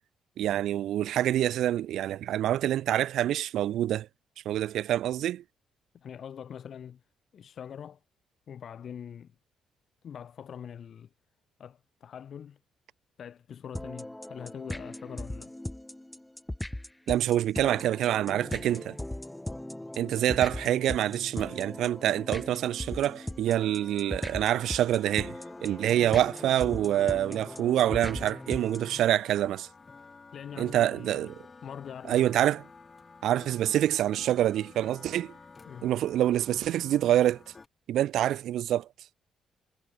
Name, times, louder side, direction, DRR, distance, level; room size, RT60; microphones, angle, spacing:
voice 1, 0.4-4.1 4.5-5.4 17.1-19.0 20.0-25.3 25.6-29.7 30.6-31.4 32.0-32.6 33.2-35.3 35.8-37.4 37.9-38.9, right 12 dB, 75° right, 0.5 m, -26 dB
voice 2, 5.9-7.0 7.3-8.0 8.5-9.3 10.0-11.1 11.6-12.6 13.2-15.6 28.9-29.1 30.3-31.3 31.6-32.4 35.6-35.9, left 8 dB, 60° left, 3.2 m, -43 dB
sound 1, 13.7-29.0, left 1 dB, 10° left, 2.3 m, -38 dB
sound 2, 21.4-37.7, left 4 dB, 30° left, 5.1 m, -51 dB
cardioid pair, 90°, 0 cm